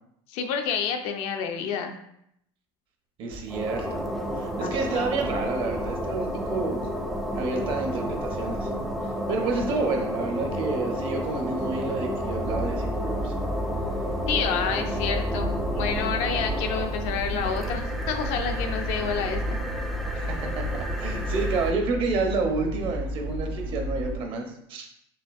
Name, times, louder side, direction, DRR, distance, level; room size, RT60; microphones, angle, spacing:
voice 1, 0.3-2.0 4.6-5.1 14.3-19.6, left 7 dB, 60° left, 5 dB, 0.5 m, -29 dB
voice 2, 3.2-4.1 4.4-7.0 7.4-8.7 9.3-13.3 20.1-24.9, right 3 dB, 45° right, 3 dB, 0.8 m, -29 dB
sound 1, 3.3-21.7, equal, ahead, 0.4 m, -31 dB
sound 2, 12.3-24.2, equal, 70° right, 1.7 m, -32 dB
4.9 x 3.2 x 2.5 m, 0.74 s
supercardioid pair, 140°, 12 cm